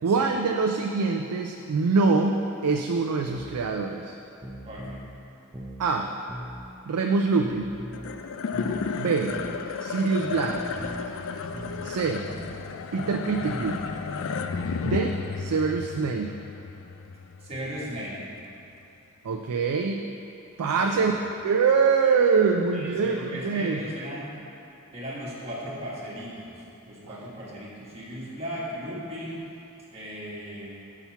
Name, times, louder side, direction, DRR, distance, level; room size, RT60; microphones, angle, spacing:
voice 1, 0.0-4.2 5.8-6.1 6.9-7.8 9.0-9.3 9.8-10.6 11.8-12.2 12.9-13.8 14.8-16.4 19.2-20.0 20.6-21.2 21.4-23.8 27.1-27.2, right 4 dB, 85° right, 3 dB, 0.4 m, -24 dB
sound 1, 3.3-3.6 4.4-5.1 5.5-5.9 6.3-6.6 7.4-8.1 8.5-8.9 9.3-9.6 10.4-11.1 11.5-11.9 12.3-12.6 13.4-14.1 14.5-14.9, right 1 dB, 10° right, 0.6 m, -40 dB
voice 2, 4.6-5.0 17.4-18.2 20.8-21.1 22.7-24.3 24.9-29.4 29.9-30.7, equal, 30° right, -7 dB, 1.6 m, -37 dB
sound 2, 7.9-18.4, left 5 dB, 60° left, 0.4 m, -33 dB
5.9 x 5.6 x 5.7 m, 2.8 s
head